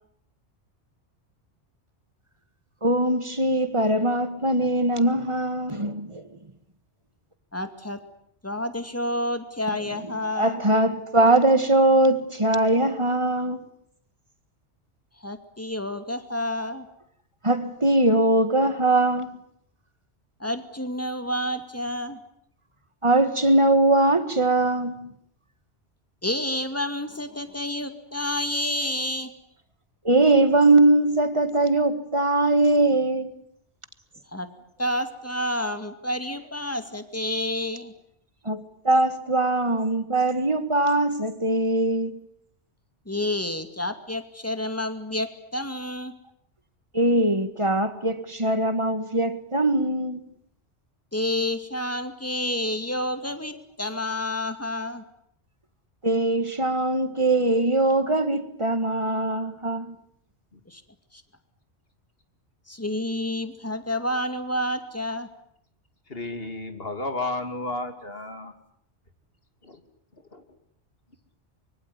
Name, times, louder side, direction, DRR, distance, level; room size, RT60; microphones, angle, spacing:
voice 1, 2.8-6.2 10.3-13.6 17.4-19.4 23.0-25.1 30.0-33.3 38.4-42.2 46.9-50.2 56.0-59.9, right 2 dB, 25° right, 1.8 m, -21 dB
voice 2, 7.5-8.0 8.4-10.6 15.2-16.9 20.4-22.2 26.2-29.3 34.3-34.5 34.8-37.9 43.1-46.1 51.1-55.0 60.7-60.8 61.1-61.2 62.7-65.3, left 1 dB, 15° left, 2.4 m, -29 dB
voice 3, 66.1-68.5 69.6-69.8 70.3-70.4, left 2 dB, 60° left, 3.1 m, -32 dB
25.0 x 23.5 x 9.7 m
omnidirectional pair, 1.1 m